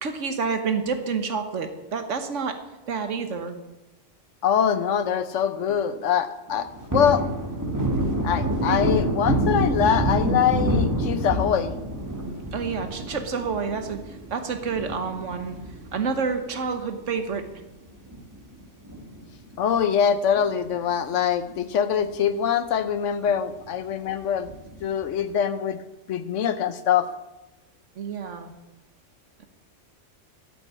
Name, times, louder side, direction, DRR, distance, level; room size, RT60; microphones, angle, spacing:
voice 1, 0.0-2.6 2.9-3.6 12.5-15.6 15.9-17.5 28.0-28.5, right 5 dB, 75° right, 7 dB, 1.4 m, -28 dB
voice 2, 4.4-7.2 8.2-11.7 19.6-24.5 24.8-25.8 26.1-27.1, left 8 dB, 75° left, 12 dB, 1.1 m, -23 dB
Thunder, 6.5-17.2 17.6-17.7 18.1-19.6 19.8-20.0 20.3-21.2 21.6-21.7 22.0-22.1 24.5-25.0, right 1 dB, 15° right, 1.2 m, -27 dB
8.9 x 7.7 x 8.3 m, 1.0 s
omnidirectional pair, 1.3 m